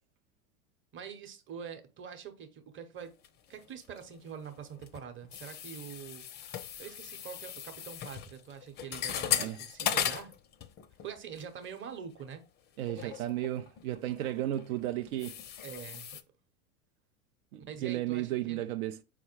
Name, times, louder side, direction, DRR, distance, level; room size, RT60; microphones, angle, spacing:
voice 1, 0.9-3.1 3.5-10.3 11.0-12.4 13.0-13.2 15.6-16.2 17.6-18.6, right 7 dB, 30° right, 0.9 m, -45 dB
sound 1, 3.2-4.2 4.4-11.1 11.4-11.6 12.2-12.3 12.8-16.2, left 9 dB, 25° left, 0.4 m, -37 dB
voice 2, 12.8-15.4 17.5-19.0, right 13 dB, 75° right, 0.5 m, -34 dB
4.8 x 2.1 x 4.5 m
hypercardioid pair, 95°, 42 cm